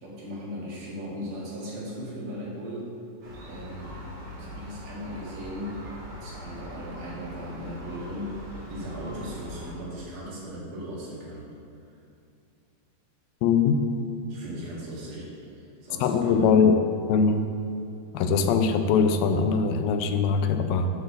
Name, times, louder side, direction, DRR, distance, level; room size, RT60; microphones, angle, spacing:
voice 1, 0.0-2.9 3.5-4.0 4.4-5.8 6.1-11.5 14.3-16.7, equal, 75° right, -6 dB, 3.6 m, -37 dB
Gull seagull, 3.2-9.8, left 1 dB, 45° right, 1.8 m, -41 dB
voice 2, 13.4-13.8 16.0-16.8 17.1-17.5 18.1-20.9, left 5 dB, 85° left, 7 dB, 2.3 m, -21 dB
7.9 x 4.5 x 6.7 m, 2.5 s
omnidirectional pair, 4.1 m